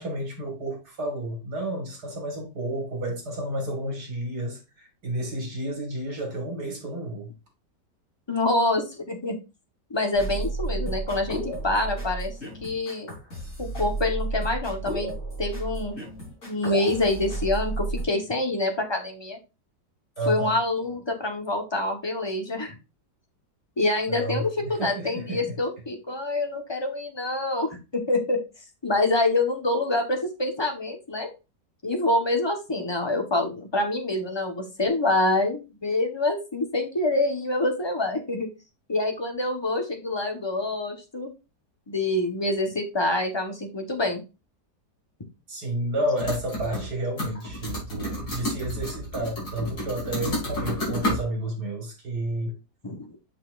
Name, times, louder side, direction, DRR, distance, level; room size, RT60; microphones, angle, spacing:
voice 1, 0.0-7.3 20.2-20.6 24.1-25.6 45.5-52.6, right 1 dB, 65° right, 2.6 m, -31 dB
voice 2, 8.3-9.4 9.9-12.3 12.6-13.2 13.6-15.1 15.4-16.0 16.5-19.4 20.3-22.7 23.8-28.4 28.8-31.3 31.8-38.5 38.9-41.3 41.9-44.2 49.6-49.7 52.8-53.0, left 2 dB, 15° left, 1.2 m, -26 dB
sound 1, 10.1-18.0, right 2 dB, 45° left, 4.2 m, -32 dB
sound 2, 46.2-46.9 47.2-51.2, left 1 dB, 60° left, 4.1 m, -31 dB
8.1 x 5.9 x 2.5 m
omnidirectional pair, 1.9 m